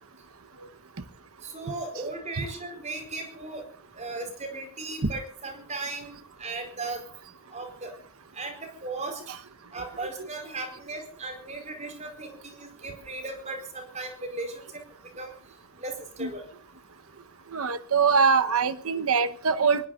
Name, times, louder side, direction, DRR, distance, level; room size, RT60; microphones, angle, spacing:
voice 1, 1.4-3.6 4.0-7.0 7.5-7.9 8.3-9.2 9.7-14.8 15.2-15.4 15.8-16.5, right 3 dB, 30° right, 6 dB, 4.4 m, -37 dB
voice 2, 17.5-19.9, right 5 dB, 75° right, 11 dB, 1.1 m, -23 dB
24.0 x 21.0 x 2.5 m, 0.42 s
head